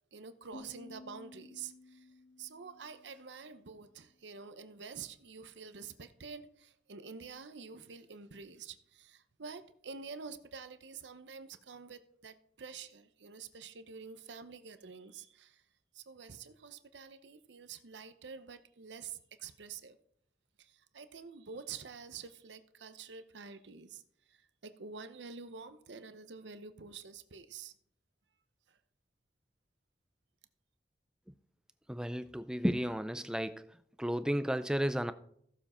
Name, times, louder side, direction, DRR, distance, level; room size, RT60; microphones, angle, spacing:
voice 1, 0.1-2.1 2.4-15.6 15.9-20.0 20.6-24.0 24.3-27.7 28.7-28.8, right 5 dB, 90° right, 0.8 m, -48 dB
sound 1, 0.5-3.5, left 2 dB, 75° left, 2.7 m, -54 dB
voice 2, 31.9-33.7 34.0-35.1, equal, 5° right, 0.4 m, -33 dB
15.5 x 7.2 x 4.3 m
head